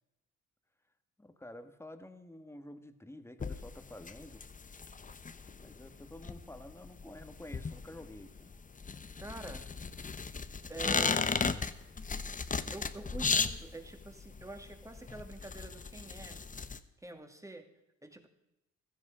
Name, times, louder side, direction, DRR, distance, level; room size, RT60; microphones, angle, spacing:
voice 1, 1.2-4.4 5.5-8.5, left 1 dB, 10° left, 9 dB, 1.6 m, -50 dB
sound 1, 3.4-16.8, left 5 dB, 25° left, 1.0 m, -36 dB
voice 2, 9.2-9.7 10.7-11.3 12.7-16.4 17.0-17.7 18.0-18.3, right 2 dB, 10° right, 6 dB, 2.4 m, -46 dB
16.0 x 14.0 x 5.0 m, 0.90 s
cardioid pair, 90°, 30 cm